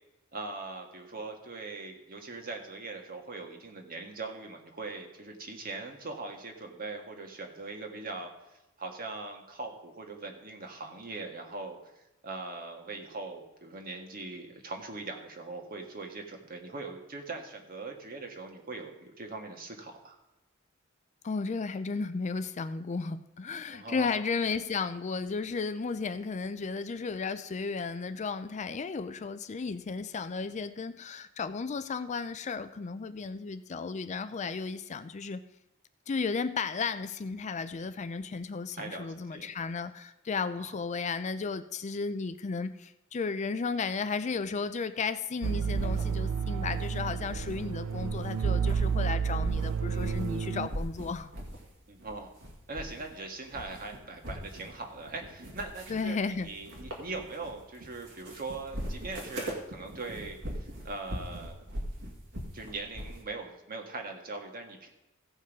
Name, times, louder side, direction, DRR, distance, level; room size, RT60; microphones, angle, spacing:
voice 1, 0.3-8.3 8.8-20.2 23.7-24.1 38.8-39.5 40.6-40.8 51.9-52.3 52.7-61.6 62.5-64.9, right 3 dB, 45° right, 3 dB, 1.6 m, -41 dB
voice 2, 21.2-35.4 36.1-51.3 55.9-56.5, left 4 dB, 35° left, 12 dB, 0.4 m, -34 dB
sound 1, 45.4-47.6 47.9-50.4 50.7-51.7 52.0-53.2 53.4-63.2, equal, 60° right, 2.1 m, -40 dB
sound 2, 45.4-50.7, right 6 dB, 90° right, 0.5 m, -30 dB
15.5 x 5.4 x 5.2 m, 0.94 s
head